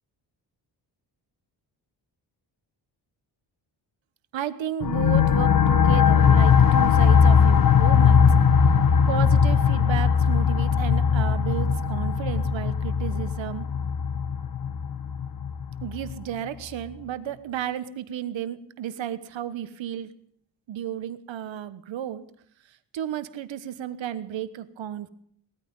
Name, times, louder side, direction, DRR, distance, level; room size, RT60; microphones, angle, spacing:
voice 1, 4.3-8.3 9.1-13.7 15.8-20.1 20.7-22.2 22.9-25.1, right 10 dB, 90° right, 13 dB, 1.3 m, -33 dB
sound 1, 4.8-16.1, left 6 dB, 50° left, 1.0 m, -19 dB
18.5 x 13.5 x 5.4 m, 0.66 s
wide cardioid pair, 175°, 44 cm